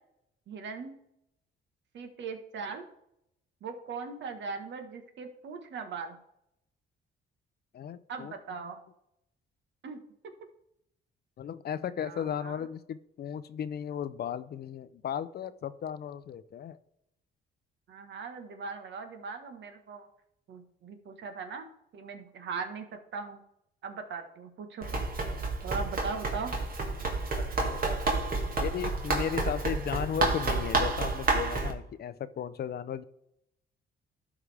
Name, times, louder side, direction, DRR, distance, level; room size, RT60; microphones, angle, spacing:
voice 1, 0.5-1.0 1.9-2.9 3.6-6.2 8.1-8.8 9.8-10.0 12.0-12.7 17.9-20.1 20.5-21.7 21.9-22.9 23.1-23.4 23.8-25.0 25.6-26.5, right 5 dB, 65° right, 6 dB, 1.3 m, -39 dB
voice 2, 7.7-8.6 11.4-16.8 27.4-28.0 28.6-33.0, left 8 dB, 55° left, 15 dB, 0.5 m, -35 dB
Run, 24.8-31.7, right 3 dB, 45° right, 1.9 m, -30 dB
12.5 x 4.9 x 3.4 m, 0.79 s
cardioid pair, 90°, 20 cm